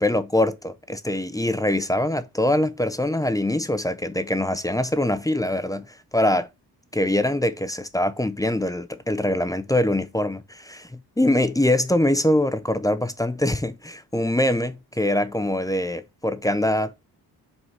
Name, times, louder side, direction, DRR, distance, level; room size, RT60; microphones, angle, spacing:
voice 1, 0.0-6.5 6.9-17.0, left 1 dB, 10° left, 0.7 m, -23 dB
5.4 x 4.7 x 5.8 m
cardioid pair, 80°, 40 cm